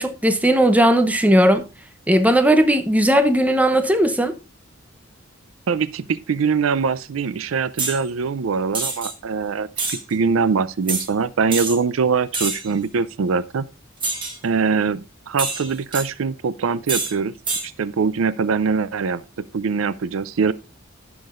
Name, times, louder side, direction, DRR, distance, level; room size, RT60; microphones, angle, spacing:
voice 1, 0.0-1.6 2.1-4.4, right 1 dB, 5° right, 0.7 m, -17 dB
voice 2, 5.7-13.6 14.4-17.3 17.6-20.5, right 5 dB, 85° right, 0.5 m, -23 dB
sound 1, 7.8-8.0 8.7-9.1 9.8-10.0 10.9-11.1 11.5-11.8 12.3-12.7 14.0-14.4 15.4-16.1 16.9-17.1 17.5-17.7, right 3 dB, 25° right, 1.9 m, -25 dB
15.5 x 5.9 x 2.5 m
head